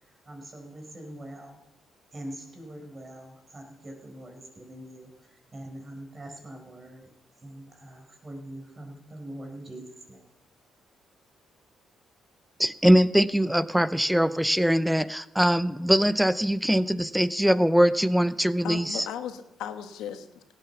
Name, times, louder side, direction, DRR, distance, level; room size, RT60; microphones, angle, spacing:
voice 1, 0.2-1.6 2.1-5.1 5.5-7.0 7.4-10.2, right 1 dB, 30° right, 2 dB, 4.8 m, -43 dB
voice 2, 12.6-19.1, equal, 5° right, 15 dB, 0.6 m, -22 dB
voice 3, 18.6-20.5, left 9 dB, 85° left, 8 dB, 1.3 m, -36 dB
17.0 x 9.1 x 7.1 m, 0.97 s
cardioid pair, 90°, 0 cm